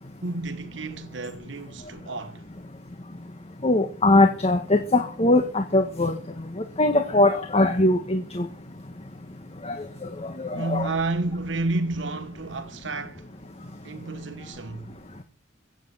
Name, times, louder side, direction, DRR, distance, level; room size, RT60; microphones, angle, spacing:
voice 1, 0.2-2.4 10.5-13.3 13.8-14.9, right 2 dB, 75° right, 1.2 m, -30 dB
voice 2, 3.6-6.2 6.6-8.5 9.6-9.8 10.2-10.9, left 2 dB, 35° left, 1.6 m, -21 dB
15.5 x 8.5 x 7.9 m
head